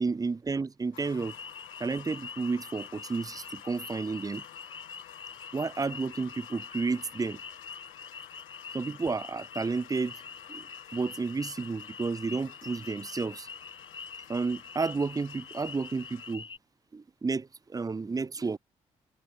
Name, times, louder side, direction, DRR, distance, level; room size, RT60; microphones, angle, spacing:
voice 1, 0.0-1.3 1.8-4.4 5.5-7.4 8.7-10.2 10.5-13.5 14.3-16.4 16.9-18.6, right 4 dB, 25° right, 0.6 m, -31 dB
sound 1, 0.9-16.4, left 19 dB, 90° left, 6.1 m, -51 dB
sound 2, 1.2-16.6, left 5 dB, 40° left, 1.3 m, -45 dB
supercardioid pair, 50°, 14 cm